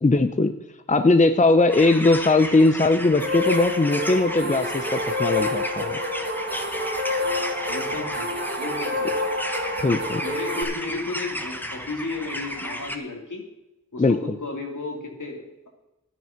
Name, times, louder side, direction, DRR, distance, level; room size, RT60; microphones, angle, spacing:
voice 1, 0.0-0.5 0.9-6.0 9.8-10.2 14.0-14.2, left 2 dB, 25° left, 9 dB, 0.7 m, -19 dB
sound 1, 1.7-13.0, equal, 5° left, 1.3 m, -33 dB
sound 2, 3.2-10.6, left 2 dB, 35° right, 2.4 m, -28 dB
voice 2, 7.7-9.3 10.2-13.4 13.9-15.7, left 3 dB, 70° left, 1 dB, 2.8 m, -33 dB
11.0 x 9.5 x 5.9 m, 0.97 s
wide cardioid pair, 60°, 31 cm